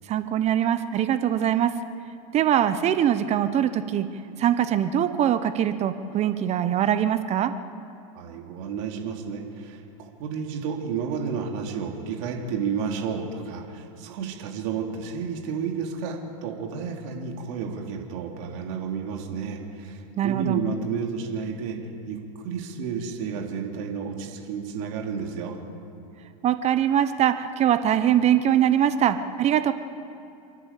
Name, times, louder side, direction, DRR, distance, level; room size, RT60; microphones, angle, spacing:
voice 1, 0.1-1.8 2.3-4.1 4.4-7.5 20.2-20.6 26.4-29.7, right 10 dB, 35° right, 11 dB, 1.1 m, -22 dB
voice 2, 8.1-21.8 22.1-22.2 22.4-25.6, right 6 dB, 60° right, 1 dB, 3.3 m, -31 dB
29.0 x 11.0 x 8.5 m, 2.7 s
hypercardioid pair, 110°, 19 cm